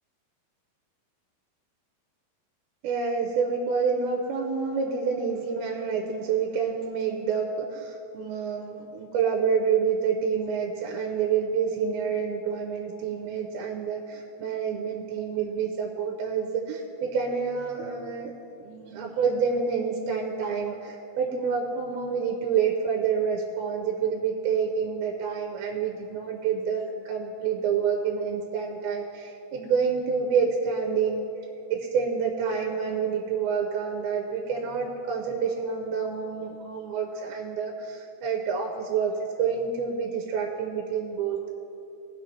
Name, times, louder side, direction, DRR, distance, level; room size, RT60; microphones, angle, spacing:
voice 1, 2.8-31.2 31.7-39.1 39.4-41.5, right 6 dB, 85° right, 1 dB, 2.6 m, -28 dB
18.0 x 6.4 x 3.2 m, 2.8 s
omnidirectional pair, 4.3 m